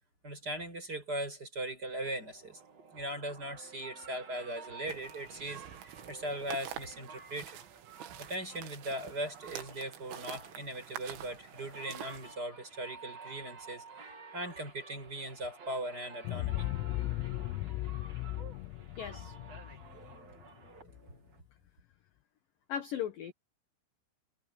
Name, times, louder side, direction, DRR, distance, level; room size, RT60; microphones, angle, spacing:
voice 1, 0.2-2.6 2.9-7.6 8.2-13.8 14.3-16.7 19.9-21.2, right 1 dB, 20° right, 6.0 m, -39 dB
sound 1, 2.0-21.4, right 5 dB, 35° right, 3.8 m, -52 dB
sound 2, 4.9-12.4, right 11 dB, 75° right, 4.3 m, -47 dB
sound 3, 16.3-21.0, left 18 dB, 90° left, 3.5 m, -37 dB
voice 2, 19.0-19.3 22.7-23.3, left 9 dB, 65° left, 2.2 m, -37 dB
omnidirectional pair, 5.9 m